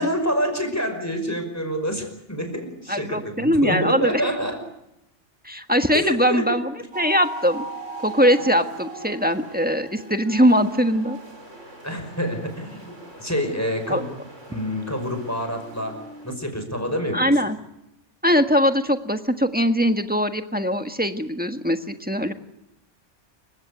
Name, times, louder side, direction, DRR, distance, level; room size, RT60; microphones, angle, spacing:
voice 1, 0.0-4.6 5.9-6.6 11.8-12.9 13.2-14.1 14.5-16.0 16.2-17.3, equal, 15° left, 6 dB, 5.4 m, -27 dB
voice 2, 2.9-4.3 5.4-7.6 8.0-11.2 13.9-14.0 17.1-17.6 18.2-22.3, equal, 10° right, 6 dB, 1.4 m, -21 dB
sound 1, 6.9-16.4, right 3 dB, 80° right, 5.3 m, -39 dB
28.5 x 16.5 x 8.4 m, 0.86 s
omnidirectional pair, 1.2 m